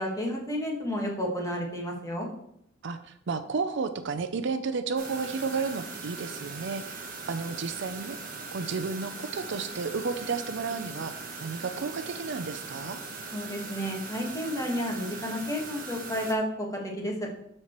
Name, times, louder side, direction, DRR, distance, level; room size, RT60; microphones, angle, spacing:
voice 1, 0.0-2.3 13.3-17.1, equal, 15° left, -1 dB, 1.6 m, -31 dB
voice 2, 2.8-13.0, right 4 dB, 65° right, 9 dB, 0.5 m, -32 dB
sound 1, 5.0-16.3, right 4 dB, 45° right, 1.2 m, -40 dB
12.5 x 4.4 x 3.1 m, 0.75 s
head